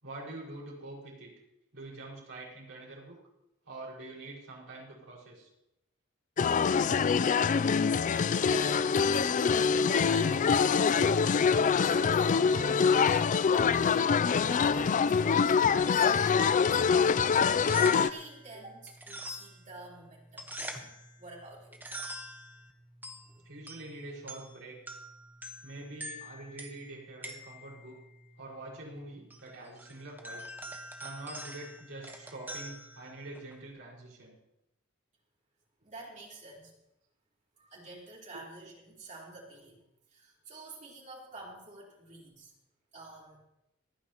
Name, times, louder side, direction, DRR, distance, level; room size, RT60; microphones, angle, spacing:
voice 1, 0.0-1.3 1.7-3.2 3.7-5.5 23.4-24.8 25.6-28.0 28.4-30.5 31.0-34.4, right 2 dB, 65° right, -3 dB, 5.2 m, -45 dB
sound 1, 6.4-18.1, left 6 dB, 35° left, 0.3 m, -25 dB
voice 2, 8.1-21.8 23.2-23.4 35.8-36.7 37.6-39.8 40.1-42.5 42.9-43.4, right 2 dB, 35° right, -4 dB, 3.9 m, -48 dB
sound 2, 17.4-33.7, equal, 10° right, 1.2 m, -46 dB
26.0 x 9.7 x 3.0 m, 0.86 s
head